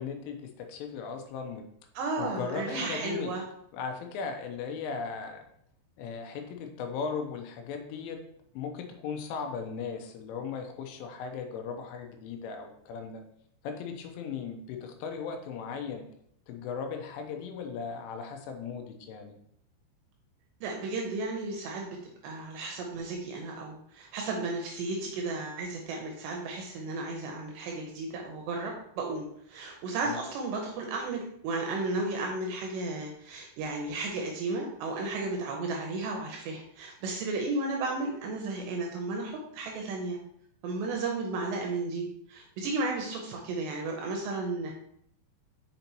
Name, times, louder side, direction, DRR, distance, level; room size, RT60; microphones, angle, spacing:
voice 1, 0.0-1.6 2.2-3.3 3.7-5.4 6.0-8.2 8.5-13.2 13.6-16.1 16.5-19.3 30.1-30.2, left 5 dB, 80° left, 5 dB, 3.2 m, -37 dB
voice 2, 2.0-3.4 20.6-22.0 22.2-40.2 40.6-44.7, right 3 dB, 80° right, 1 dB, 2.6 m, -34 dB
6.8 x 5.3 x 2.9 m, 0.70 s
omnidirectional pair, 5.6 m